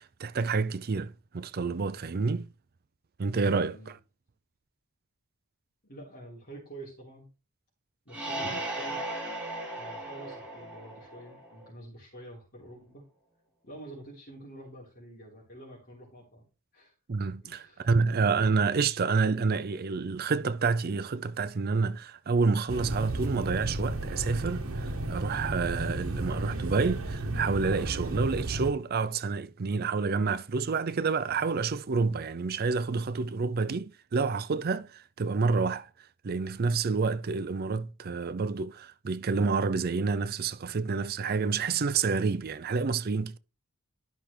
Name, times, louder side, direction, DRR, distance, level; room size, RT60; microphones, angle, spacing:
voice 1, 0.0-2.5 3.2-3.7 8.5-8.6 17.1-35.9 36.2-43.4, right 4 dB, 45° right, 0.5 m, -28 dB
voice 2, 3.5-3.9 5.8-7.3 8.0-9.0 9.8-13.0 13.6-16.4 16.7-16.9 17.4-17.9, right 1 dB, 45° left, 3.4 m, -47 dB
sound 1, 8.1-11.7, right 1 dB, 5° right, 3.9 m, -37 dB
sound 2, 22.7-28.7, right 1 dB, 75° right, 1.6 m, -33 dB
12.5 x 5.9 x 3.3 m
head